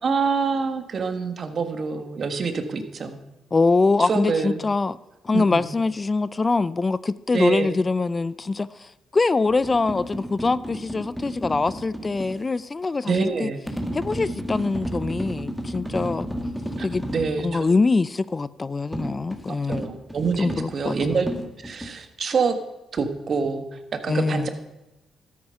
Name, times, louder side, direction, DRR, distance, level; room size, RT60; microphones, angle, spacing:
voice 1, 0.0-3.2 4.0-4.6 5.3-5.6 7.3-7.7 13.0-13.6 16.8-16.9 17.1-17.7 19.7-21.3 21.6-22.5 22.9-24.5, right 5 dB, 55° right, 8 dB, 1.5 m, -26 dB
voice 2, 3.5-5.0 5.2-13.5 13.9-16.3 16.8-17.0 17.4-19.8 20.4-21.2 24.1-24.5, left 3 dB, 35° left, 18 dB, 0.5 m, -23 dB
sound 1, 9.5-12.4 13.7-17.4 18.9-21.9, equal, ahead, 1.9 m, -32 dB
13.0 x 8.6 x 5.7 m, 0.95 s
supercardioid pair, 55°, 0 cm